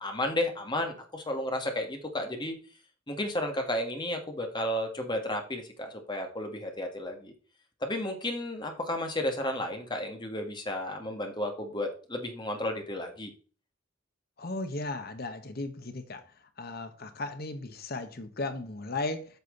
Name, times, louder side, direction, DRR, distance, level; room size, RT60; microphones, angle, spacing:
voice 1, 0.0-2.6 3.1-7.3 7.8-13.3, left 1 dB, 25° left, 1.9 m, -33 dB
voice 2, 14.4-16.2 16.6-19.3, left 2 dB, 50° left, 1.2 m, -36 dB
8.3 x 6.4 x 3.9 m
head